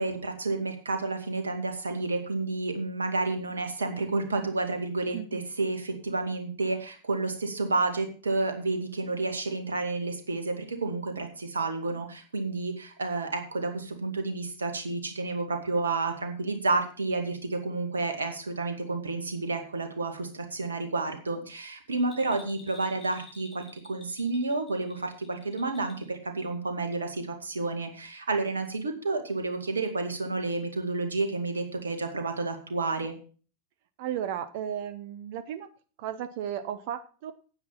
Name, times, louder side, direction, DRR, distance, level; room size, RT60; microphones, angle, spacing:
voice 1, 0.0-33.1, right 3 dB, 70° right, 6 dB, 2.1 m, -30 dB
Bell, 22.0-26.1 26.4-26.5, left 3 dB, 20° left, 4.3 m, -51 dB
voice 2, 34.0-35.7 36.0-37.3, right 9 dB, 50° right, 12 dB, 0.7 m, -34 dB
9.7 x 8.7 x 5.7 m, 0.39 s
figure-of-eight pair, 90°, 0 cm